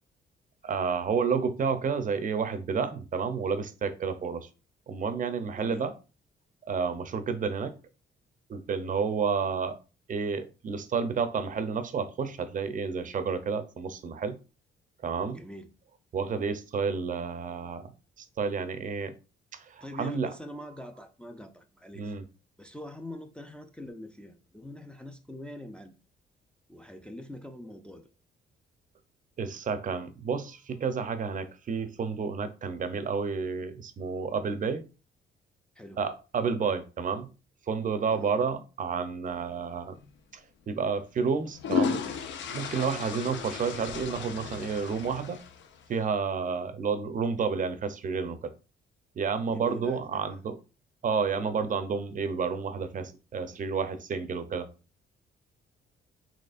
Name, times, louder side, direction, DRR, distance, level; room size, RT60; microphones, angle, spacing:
voice 1, 0.6-4.5 4.9-5.9 6.7-7.7 8.5-9.8 10.1-14.4 15.0-15.4 16.1-17.9 18.2-19.1 19.5-20.3 22.0-22.2 29.4-34.8 36.0-37.3 37.7-40.0 40.3-40.4 40.7-42.0 42.4-45.4 45.9-48.5 49.2-50.6 51.0-54.7, right 5 dB, 40° right, 0.6 m, -30 dB
voice 2, 5.5-5.9 15.3-15.7 19.8-22.1 22.6-26.0 26.7-28.1 35.8-36.0 38.1-38.3 49.5-50.2, left 1 dB, 5° left, 0.4 m, -44 dB
sound 1, 39.9-40.1 41.3-45.9, left 6 dB, 70° left, 0.6 m, -34 dB
4.2 x 3.0 x 2.4 m
cardioid pair, 90°, 20 cm